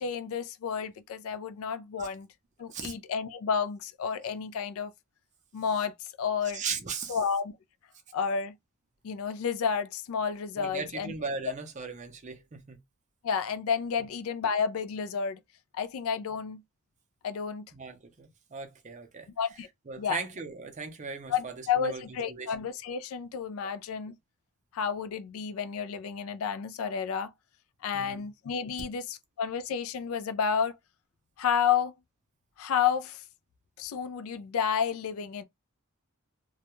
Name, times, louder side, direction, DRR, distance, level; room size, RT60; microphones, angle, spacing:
voice 1, 0.0-2.3 2.6-4.9 5.5-5.9 6.2-6.6 7.1-7.5 8.1-8.5 9.0-11.1 13.2-15.4 15.8-16.6 17.2-17.7 19.4-19.7 20.0-20.2 21.3-24.1 24.7-27.3 27.8-30.7 31.4-31.9 32.6-33.2 33.8-35.4, left 7 dB, 85° left, 0.3 m, -31 dB
voice 2, 6.5-7.2 10.6-12.8 14.0-14.1 17.7-19.3 19.9-22.5 23.6-23.7 27.9-28.3, right 5 dB, 35° right, 0.5 m, -38 dB
2.3 x 2.1 x 2.9 m
head